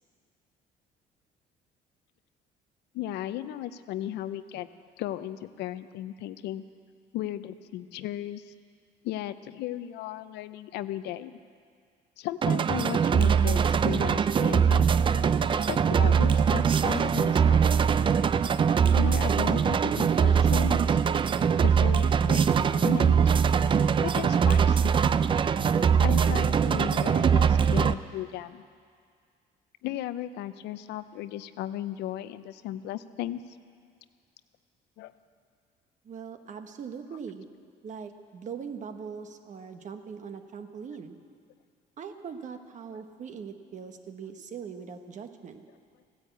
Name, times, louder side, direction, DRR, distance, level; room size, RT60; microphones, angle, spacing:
voice 1, 2.9-4.7 5.0-6.6 7.1-8.5 9.0-11.3 12.2-14.8 15.7-17.7 19.0-21.0 21.6-23.2 24.0-25.1 26.0-28.6 29.8-33.4 35.0-35.1, left 13 dB, 85° left, 13 dB, 0.6 m, -36 dB
sound 1, 12.4-27.9, right 7 dB, 30° right, 0.4 m, -22 dB
voice 2, 36.0-37.5 37.8-41.2 42.0-45.6, right 6 dB, 45° right, 7 dB, 1.2 m, -41 dB
16.0 x 10.0 x 8.2 m, 2.2 s
cardioid pair, 110°, 17 cm